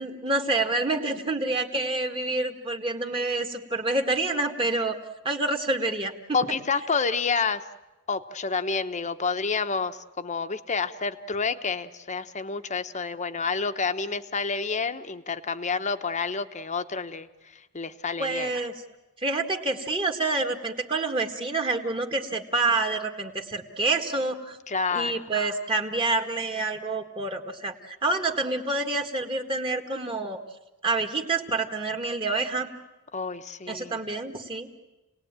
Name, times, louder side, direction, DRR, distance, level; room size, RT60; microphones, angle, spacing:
voice 1, 0.0-5.0 5.2-6.1 18.2-18.7 19.2-24.6 24.9-30.4 30.8-32.7 33.7-34.8, right 3 dB, 25° right, 5 dB, 1.9 m, -27 dB
voice 2, 6.3-7.6 8.1-18.5 24.7-25.3 33.1-34.0, left 4 dB, 35° left, 9 dB, 1.0 m, -29 dB
30.0 x 19.5 x 9.0 m, 1.1 s
head